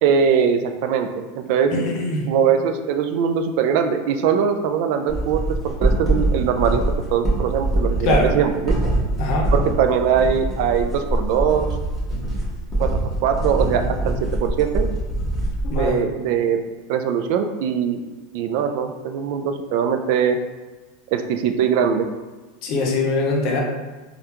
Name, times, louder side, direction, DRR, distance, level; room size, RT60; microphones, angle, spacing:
voice 1, 0.0-1.7 2.3-6.8 7.1-8.8 9.5-11.7 12.8-14.9 15.7-16.6 16.9-18.0 18.3-20.4 21.1-22.1, right 7 dB, 60° right, 7 dB, 0.3 m, -21 dB
voice 2, 1.7-2.3 8.0-8.3 9.2-9.5 15.6-16.1 22.6-23.6, left 2 dB, 50° left, 0 dB, 0.7 m, -22 dB
sound 1, 5.1-15.9, right 1 dB, ahead, 1.2 m, -23 dB
3.4 x 2.3 x 2.9 m, 1.2 s
supercardioid pair, 125°, 0 cm